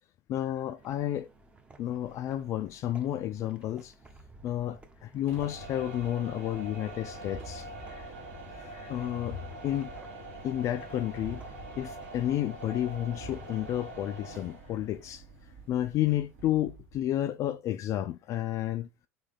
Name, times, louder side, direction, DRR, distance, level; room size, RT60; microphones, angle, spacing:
voice 1, 0.3-1.3 1.8-3.9 4.4-8.1 8.5-9.4 9.6-9.9 10.4-11.4 11.8-15.2 15.7-18.9, left 12 dB, 40° left, 0.3 m, -31 dB
sound 1, 0.8-14.1, right 2 dB, 15° right, 0.8 m, -55 dB
sound 2, 5.2-17.0, right 1 dB, 65° right, 1.8 m, -44 dB
3.8 x 3.2 x 3.6 m
figure-of-eight pair, 80°, 8 cm